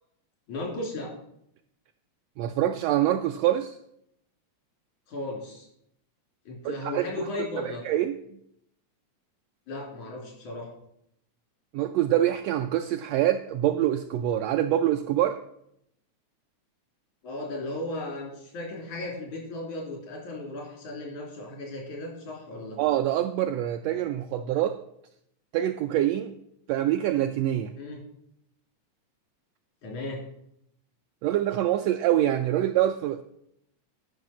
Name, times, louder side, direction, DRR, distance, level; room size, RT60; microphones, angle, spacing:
voice 1, 0.5-1.1 5.1-5.7 6.5-7.8 9.7-10.7 17.2-22.8 27.8-28.0 29.8-30.2, left 2 dB, 90° left, -1 dB, 4.6 m, -35 dB
voice 2, 2.4-3.8 6.6-7.1 7.6-8.2 11.7-15.4 22.8-24.8 25.5-26.3 26.7-27.8 31.2-33.2, right 12 dB, 85° right, 7 dB, 1.4 m, -25 dB
12.0 x 5.7 x 6.0 m, 0.75 s
omnidirectional pair, 3.4 m